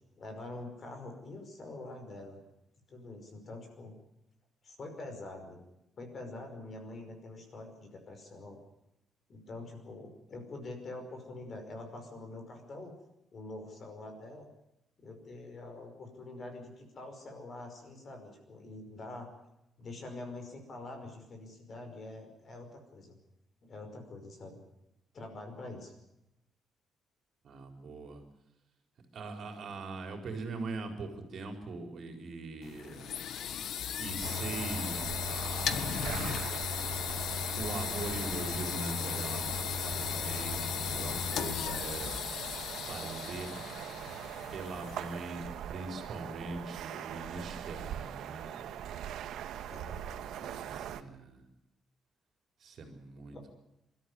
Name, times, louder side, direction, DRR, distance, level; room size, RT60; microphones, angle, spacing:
voice 1, 0.2-2.4 2.9-3.9 4.6-5.6 6.0-8.6 9.3-12.9 13.3-14.5 15.0-19.3 19.8-23.2 23.6-24.6 25.1-25.9 49.7-50.6 53.3-53.4, left 2 dB, 35° left, 5 dB, 5.4 m, -45 dB
voice 2, 27.4-28.2 29.1-33.2 34.0-36.1 37.5-42.2 42.8-43.7 44.5-48.8 50.5-51.4 52.6-53.5, right 3 dB, 45° right, 5 dB, 4.4 m, -42 dB
sound 1, 32.6-45.4, left 8 dB, 65° left, 1.4 m, -36 dB
sound 2, 34.2-51.0, right 10 dB, 80° right, 1.5 m, -42 dB
28.0 x 14.0 x 9.6 m, 0.88 s
cardioid pair, 180°, 0 cm